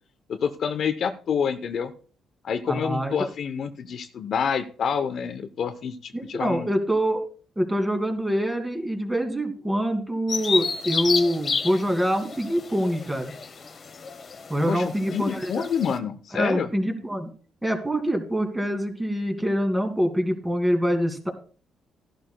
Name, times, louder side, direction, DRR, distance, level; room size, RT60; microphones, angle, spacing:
voice 1, 0.3-1.9 2.4-6.7 14.7-16.7, left 7 dB, 60° left, 9 dB, 0.8 m, -28 dB
voice 2, 2.7-3.1 6.1-7.2 7.6-13.3 14.5-15.7 16.3-17.3 17.6-21.3, equal, 10° right, 4 dB, 2.4 m, -25 dB
Bird vocalization bird call bird song, 10.3-16.0, left 5 dB, 45° left, 1.1 m, -30 dB
14.5 x 11.5 x 2.3 m, 0.40 s
cardioid pair, 90°, 0 cm